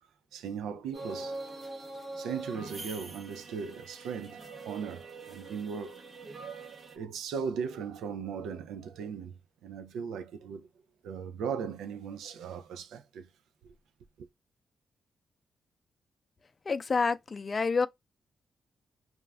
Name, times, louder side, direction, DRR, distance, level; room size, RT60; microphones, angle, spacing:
voice 1, 0.3-1.4 2.2-6.0 6.4-10.7 11.0-13.3 13.6-13.7 14.2-14.3, right 6 dB, 85° right, 0.3 m, -38 dB
sound 1, 0.9-7.0, right 2 dB, 55° right, 0.8 m, -43 dB
voice 2, 16.7-17.9, left 4 dB, 45° left, 0.4 m, -28 dB
2.4 x 2.2 x 3.3 m
supercardioid pair, 55°, 0 cm